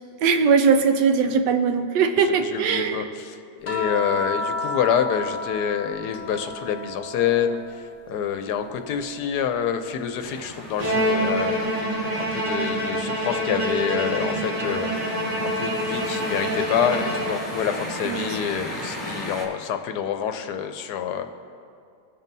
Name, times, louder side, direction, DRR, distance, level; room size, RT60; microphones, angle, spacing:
voice 1, 0.2-3.1 18.0-18.4, right 5 dB, 80° right, 7 dB, 1.3 m, -20 dB
voice 2, 2.3-11.9 12.2-21.2, left 8 dB, 75° left, 7 dB, 1.2 m, -27 dB
sound 1, 3.7-8.1 8.5-10.1 11.7-11.8, left 3 dB, 45° left, 0.4 m, -33 dB
sound 2, 10.2-19.5, left 1 dB, 10° left, 2.6 m, -36 dB
Bowed string instrument, 10.8-17.7, equal, 30° right, 1.6 m, -26 dB
21.0 x 7.2 x 2.7 m, 2.4 s
omnidirectional pair, 1.8 m